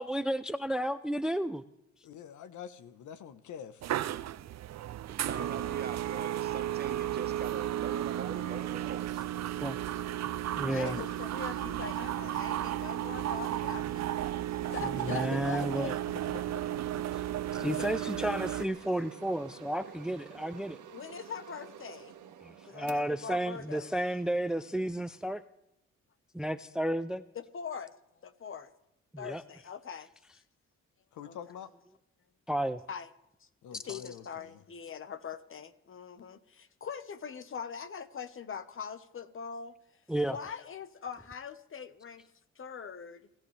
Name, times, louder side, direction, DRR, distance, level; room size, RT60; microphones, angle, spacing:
voice 1, 0.0-1.6 9.6-9.8 10.6-11.0 15.0-16.0 17.5-20.8 22.4-25.4 26.3-27.2 29.1-29.4 32.5-32.8 33.9-34.0 40.1-40.4, right 1 dB, ahead, 14 dB, 0.5 m, -32 dB
voice 2, 2.0-3.8 10.8-11.1 14.7-16.0 16.3-17.0 17.5-17.7 31.1-31.7 33.6-34.6, left 8 dB, 75° left, 13 dB, 1.2 m, -46 dB
sound 1, 3.8-18.7, right 12 dB, 60° right, 0.7 m, -34 dB
voice 3, 5.2-9.1, right 5 dB, 35° right, 9 dB, 1.3 m, -42 dB
sound 2, 7.0-25.4, right 9 dB, 80° right, 1.6 m, -50 dB
voice 4, 10.7-15.9 17.8-17.9 20.9-22.1 22.6-23.9 27.3-27.9 28.2-28.7 29.2-30.1 31.2-31.3 32.9-33.1 33.4-39.7 40.3-42.2 42.6-43.3, left 6 dB, 45° left, 12 dB, 1.3 m, -42 dB
28.5 x 13.5 x 3.4 m, 0.86 s
cardioid pair, 90°, 30 cm